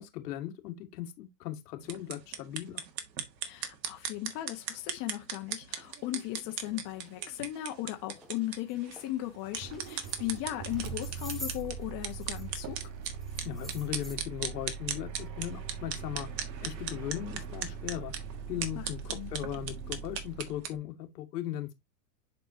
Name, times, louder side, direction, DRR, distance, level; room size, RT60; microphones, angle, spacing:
voice 1, 0.0-2.8 13.4-16.3 16.6-18.1 18.5-21.7, left 12 dB, 75° left, 2.0 m, -38 dB
sound 1, 1.8-20.8, right 8 dB, 90° right, 1.7 m, -39 dB
voice 2, 3.4-12.8 18.7-19.3, left 15 dB, 40° left, 1.3 m, -37 dB
sound 2, 6.3-6.4 6.9-7.1 7.6-7.7 8.2-8.4 8.7-9.1 9.7-10.4 10.7-12.6 12.8-14.1, left 2 dB, ahead, 1.2 m, -47 dB
Motor vehicle (road), 9.5-20.6, right 6 dB, 40° right, 1.4 m, -42 dB
10.0 x 4.3 x 2.8 m
supercardioid pair, 135°, 49 cm